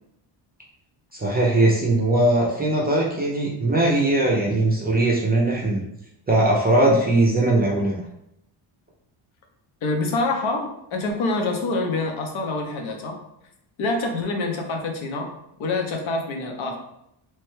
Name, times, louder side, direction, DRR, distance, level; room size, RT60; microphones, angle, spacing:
voice 1, 1.1-5.8 6.3-8.0, right 2 dB, 20° right, -3 dB, 0.3 m, -20 dB
voice 2, 9.8-13.2 13.8-15.3 15.6-16.8, left 2 dB, 70° left, 2 dB, 0.7 m, -26 dB
3.1 x 2.2 x 3.1 m, 0.79 s
cardioid pair, 140°, 49 cm